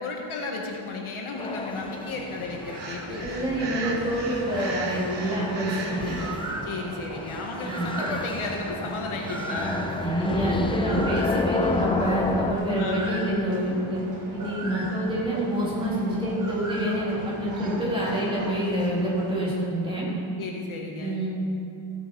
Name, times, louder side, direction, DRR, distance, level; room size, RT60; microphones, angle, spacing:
voice 1, 0.0-3.8 6.6-9.8 12.8-13.3 20.4-21.2, left 3 dB, 80° left, 0 dB, 1.4 m, -34 dB
sound 1, 1.4-12.5, left 3 dB, 10° left, 0.3 m, -31 dB
sound 2, 1.4-19.7, right 2 dB, 35° right, 1.7 m, -37 dB
Breathing, 2.7-6.3, right 3 dB, 60° right, 1.3 m, -36 dB
voice 2, 3.2-6.1 7.6-7.9 10.0-14.0 14.3-20.1 21.0-21.3, right 1 dB, 10° right, -7 dB, 3.3 m, -27 dB
16.0 x 7.8 x 4.6 m, 2.6 s
wide cardioid pair, 145°, 48 cm